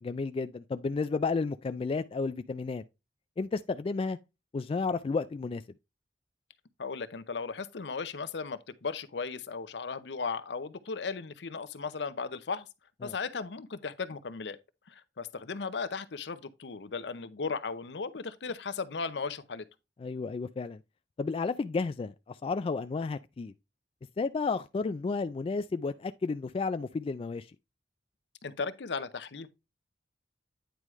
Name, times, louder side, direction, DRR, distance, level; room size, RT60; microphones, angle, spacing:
voice 1, 0.0-2.8 3.4-4.2 4.5-5.6 13.0-13.1 20.0-20.8 21.2-23.5 24.2-27.5, left 4 dB, 30° left, 0.3 m, -32 dB
voice 2, 6.8-12.7 13.0-14.6 14.9-19.6 28.4-29.5, left 4 dB, 70° left, 0.7 m, -36 dB
9.2 x 4.8 x 3.1 m
head